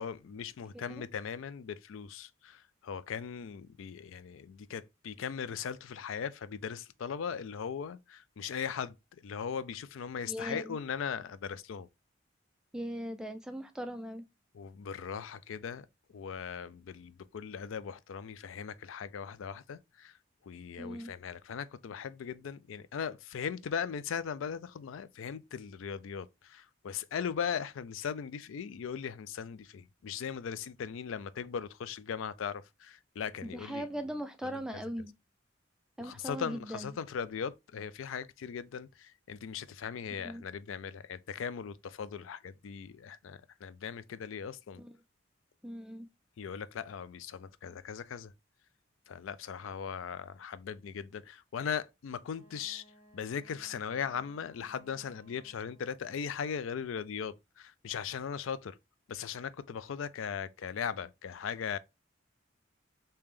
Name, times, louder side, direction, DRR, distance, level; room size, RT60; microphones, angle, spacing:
voice 1, 0.0-11.9 14.5-20.2 20.4-33.9 34.5-34.8 36.0-44.8 46.4-48.3 49.1-52.8 53.1-58.8 59.1-61.8, left 7 dB, 75° left, 0.4 m, -39 dB
voice 2, 10.3-10.6 12.7-14.2 20.8-21.1 33.4-35.1 36.0-36.9 40.2-40.4 44.8-44.9 45.6-46.1, equal, 5° right, 0.3 m, -39 dB
Wind instrument woodwind instrument, 52.3-56.0, equal, 40° left, 1.7 m, -61 dB
3.2 x 2.9 x 3.5 m
head